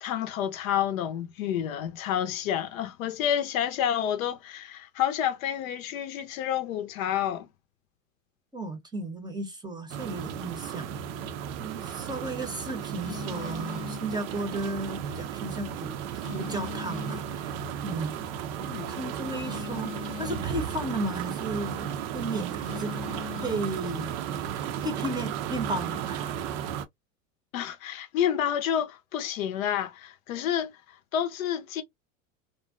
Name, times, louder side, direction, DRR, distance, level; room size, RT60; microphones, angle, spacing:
voice 1, 0.0-7.5 18.6-19.0 27.5-30.7 31.1-31.8, left 10 dB, 80° left, 0.6 m, -29 dB
voice 2, 8.5-11.1 11.6-18.4 19.0-22.9 23.4-24.1 24.8-26.3, right 1 dB, 10° right, 0.6 m, -34 dB
sound 1, 9.9-26.8, right 9 dB, 60° right, 0.5 m, -34 dB
Telephone, 12.0-24.9, left 10 dB, 30° left, 0.5 m, -45 dB
2.5 x 2.1 x 2.3 m
hypercardioid pair, 95°, 40 cm